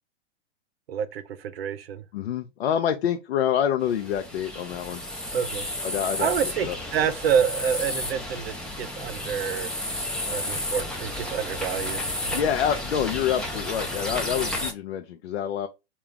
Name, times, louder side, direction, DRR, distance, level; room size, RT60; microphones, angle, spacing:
voice 1, 0.9-2.0 5.3-5.7 6.2-9.7 10.3-12.4, right 8 dB, 65° right, 0.6 m, -28 dB
voice 2, 2.1-5.0 5.8-6.3 6.6-6.8 12.3-15.7, left 9 dB, 75° left, 0.6 m, -27 dB
sound 1, 3.8-14.7, left 1 dB, 5° left, 0.3 m, -32 dB
3.4 x 2.4 x 3.7 m
hypercardioid pair, 120°, 32 cm